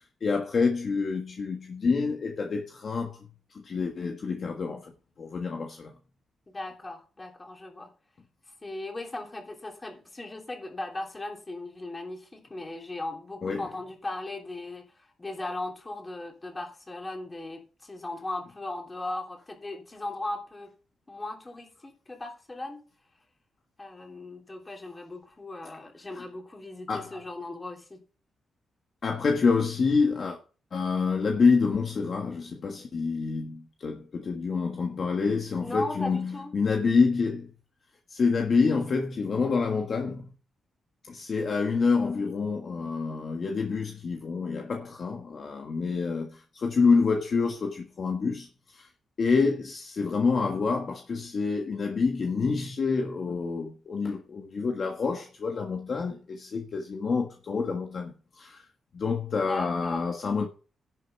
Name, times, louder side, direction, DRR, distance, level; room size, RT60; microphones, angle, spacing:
voice 1, 0.2-3.2 3.5-4.9 5.2-5.9 13.4-13.7 26.9-27.1 29.0-30.4 30.7-37.5 38.1-40.3 41.1-48.5 48.7-48.9 49.2-58.6 58.9-60.5, left 4 dB, 50° left, 1.4 m, -27 dB
voice 2, 6.5-7.9 8.6-20.7 21.1-22.8 23.8-28.0 35.6-36.5 59.5-60.1, left 2 dB, 20° left, 3.1 m, -37 dB
11.0 x 6.7 x 5.4 m
cardioid pair, 120°, 0 cm